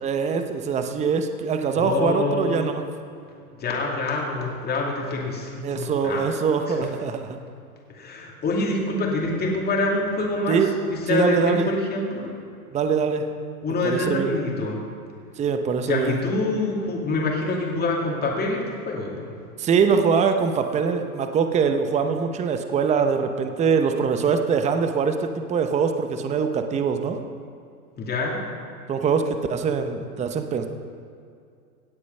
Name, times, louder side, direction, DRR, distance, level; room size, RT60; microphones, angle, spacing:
voice 1, 0.0-2.8 5.6-7.4 10.5-10.7 11.1-11.7 12.7-13.2 13.8-14.3 15.4-16.2 19.6-27.2 28.9-30.7, right 6 dB, 15° right, 7 dB, 0.7 m, -23 dB
voice 2, 1.8-2.7 3.6-6.2 7.9-10.6 10.9-12.3 13.6-14.8 15.9-19.4 28.0-28.4, left 2 dB, 20° left, -1 dB, 2.4 m, -26 dB
17.0 x 8.3 x 5.5 m, 2.4 s
hypercardioid pair, 120°, 46 cm